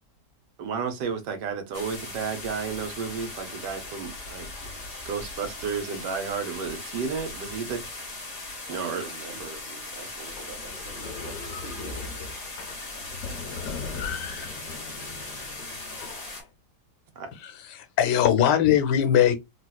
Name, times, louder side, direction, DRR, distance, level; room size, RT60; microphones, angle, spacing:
voice 1, 0.6-4.5 5.1-7.8 8.7-9.0 17.2-17.3, right 6 dB, 85° right, 1.4 m, -32 dB
sound 1, 1.7-16.4, left 2 dB, 35° left, 0.7 m, -39 dB
voice 2, 8.7-12.2, right 3 dB, 50° right, 0.7 m, -45 dB
sound 2, 10.2-16.5, left 5 dB, 60° left, 1.0 m, -38 dB
voice 3, 17.4-19.4, left 10 dB, 90° left, 1.3 m, -21 dB
3.8 x 2.4 x 2.2 m
omnidirectional pair, 1.8 m